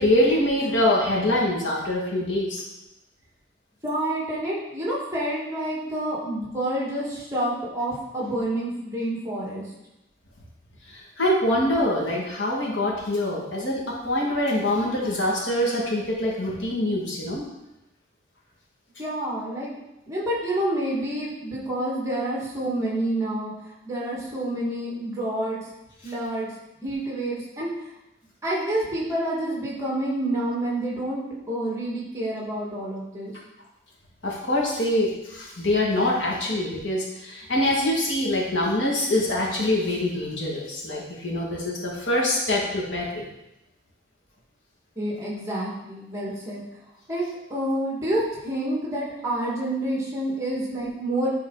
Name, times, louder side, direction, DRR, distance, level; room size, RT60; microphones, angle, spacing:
voice 1, 0.0-2.6 10.9-17.4 34.2-43.1, left 1 dB, 90° left, -3 dB, 2.0 m, -24 dB
voice 2, 3.8-9.6 19.0-19.7 20.1-23.5 23.8-25.6 26.0-26.5 26.8-27.9 28.4-33.3 43.1-43.2 45.0-46.6 47.1-47.2 47.5-51.3, right 1 dB, 15° right, -5 dB, 1.9 m, -28 dB
10.0 x 4.2 x 3.9 m, 0.92 s
head